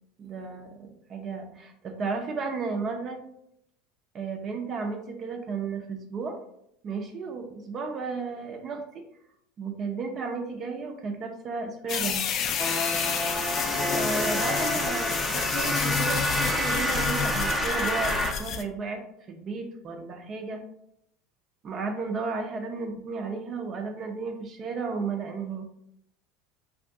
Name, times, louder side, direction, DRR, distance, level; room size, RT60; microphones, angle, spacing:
voice 1, 0.2-3.2 4.1-6.4 6.8-9.0 9.6-12.3 13.9-19.0 19.3-20.6 21.6-25.6, right 4 dB, 40° right, 4 dB, 0.6 m, -33 dB
sound 1, 11.9-18.6, left 7 dB, 45° left, 0.3 m, -30 dB
sound 2, 12.6-18.3, equal, ahead, 0.6 m, -28 dB
2.7 x 2.5 x 3.4 m, 0.73 s
hypercardioid pair, 95°, 0 cm